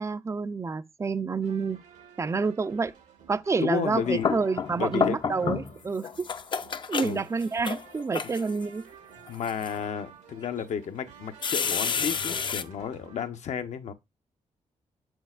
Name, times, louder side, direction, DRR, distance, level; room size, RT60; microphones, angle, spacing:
voice 1, 0.0-1.8 2.2-2.9 3.3-6.1 6.9-8.8, right 4 dB, 25° right, 0.4 m, -28 dB
sound 1, 1.4-13.3, right 7 dB, 85° right, 1.3 m, -52 dB
voice 2, 3.6-4.3 4.8-5.2 7.0-7.2 8.2-8.3 9.3-13.9, left 7 dB, 70° left, 0.8 m, -32 dB
sound 2, 3.8-5.8 6.0-8.6 9.3-9.7 10.4-10.5 11.4-12.6, left 6 dB, 40° left, 0.5 m, -30 dB
7.2 x 6.1 x 2.4 m
cardioid pair, 100°, 12 cm